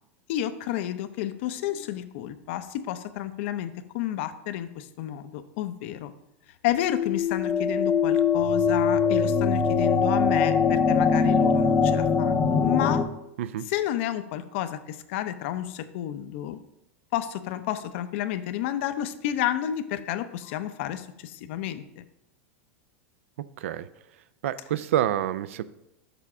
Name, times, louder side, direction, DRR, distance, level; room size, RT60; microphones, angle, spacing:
voice 1, 0.3-6.1 6.6-13.0 13.7-16.6 17.1-22.1, left 12 dB, 60° left, 11 dB, 0.5 m, -31 dB
sound 1, 6.8-13.0, left 5 dB, 15° left, 0.5 m, -22 dB
voice 2, 23.6-23.9 24.4-25.6, right 11 dB, 80° right, 16 dB, 0.4 m, -27 dB
6.8 x 3.6 x 6.0 m, 0.87 s
supercardioid pair, 135°, 7 cm